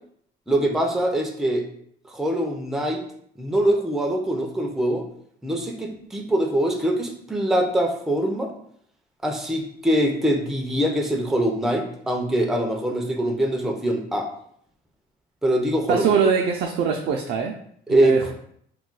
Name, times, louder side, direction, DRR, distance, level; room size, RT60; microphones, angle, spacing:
voice 1, 0.5-1.7 2.1-3.0 3.4-5.1 5.4-8.5 9.2-14.3 15.4-16.1 17.9-18.2, right 1 dB, ahead, 2 dB, 0.4 m, -23 dB
voice 2, 15.9-17.6 17.9-18.3, right 6 dB, 65° right, 2 dB, 0.4 m, -22 dB
2.3 x 2.2 x 3.8 m, 0.66 s
cardioid pair, 110°, 17 cm